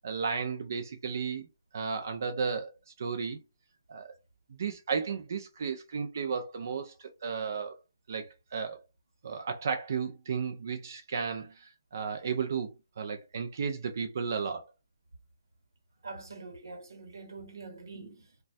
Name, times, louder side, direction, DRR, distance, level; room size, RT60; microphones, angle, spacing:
voice 1, 0.0-1.5 1.7-2.7 3.0-3.4 3.9-4.2 4.6-6.9 7.2-7.8 8.1-8.8 9.2-14.7, right 5 dB, 50° right, 0.4 m, -34 dB
voice 2, 16.0-18.4, right 3 dB, 75° right, 1.0 m, -45 dB
3.1 x 2.2 x 2.6 m
hypercardioid pair, 170°, 2 cm